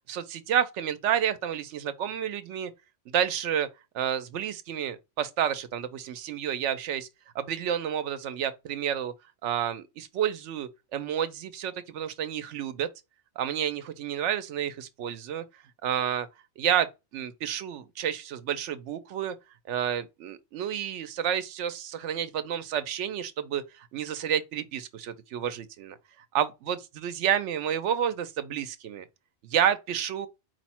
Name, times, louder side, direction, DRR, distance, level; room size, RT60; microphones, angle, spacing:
voice 1, 0.1-2.7 3.1-3.7 3.9-7.1 7.3-9.1 9.4-12.9 13.4-15.4 15.8-16.3 16.6-19.4 19.7-25.9 26.3-29.0 29.4-30.3, right 9 dB, 80° right, 0.9 m, -30 dB
4.6 x 2.1 x 4.2 m
omnidirectional pair, 1.2 m